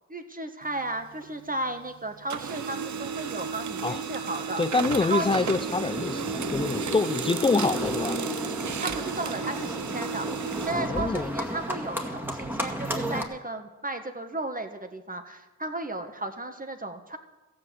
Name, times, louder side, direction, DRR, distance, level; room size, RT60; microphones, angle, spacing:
voice 1, 0.1-4.6 5.0-5.5 8.8-17.2, right 2 dB, 30° right, 7 dB, 1.6 m, -34 dB
Printer, 0.6-1.9 2.2-11.7, right 6 dB, 80° right, 0.7 m, -34 dB
voice 2, 4.6-8.2 10.7-11.3, left 4 dB, 20° left, 12 dB, 0.4 m, -26 dB
Livestock farm animals working animals, 5.2-13.2, equal, 5° right, 2.0 m, -33 dB
15.0 x 7.9 x 7.8 m, 1.1 s
cardioid pair, 55°, 29 cm